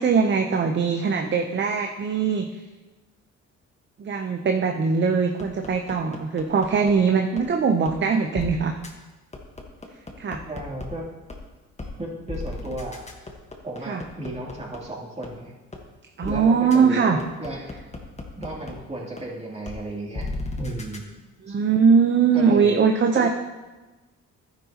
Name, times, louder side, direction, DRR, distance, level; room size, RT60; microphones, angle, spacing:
voice 1, 0.0-2.5 4.0-8.7 10.2-10.4 13.9-14.0 16.2-17.2 21.5-23.3, right 5 dB, 40° right, 4 dB, 0.7 m, -21 dB
sound 1, 5.4-6.9 7.4-7.5 7.9-8.0 8.3-8.5 8.8-8.9 9.3-10.9 11.3-11.4 11.8-11.9 12.3-14.8 15.2-15.3 15.7-15.8 16.2-16.3 16.7-16.8 17.2-18.7 19.2-19.3 19.7-19.8 20.1-21.0, left 2 dB, 20° left, 1.4 m, -34 dB
voice 2, 10.5-11.1 12.0-13.0 13.6-15.5 16.2-17.6 18.4-20.3 20.6-21.0 21.5-21.6 22.3-22.8 23.1-23.3, right 1 dB, 20° right, -4 dB, 2.8 m, -34 dB
11.5 x 9.8 x 2.9 m, 1.2 s
cardioid pair, 90°, 30 cm